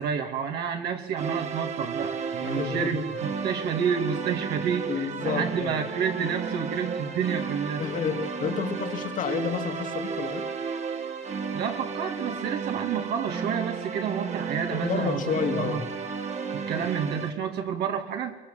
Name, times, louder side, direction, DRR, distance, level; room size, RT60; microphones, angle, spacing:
voice 1, 0.0-7.8 11.5-15.8 16.5-18.4, right 7 dB, 75° right, 3 dB, 2.6 m, -30 dB
sound 1, 1.2-17.3, right 6 dB, 40° right, 1.9 m, -33 dB
voice 2, 2.4-3.1 4.9-5.8 7.8-10.5 14.7-15.9, left 7 dB, 50° left, 6 dB, 2.6 m, -30 dB
22.5 x 22.5 x 7.7 m, 1.2 s
cardioid pair, 110°, 17 cm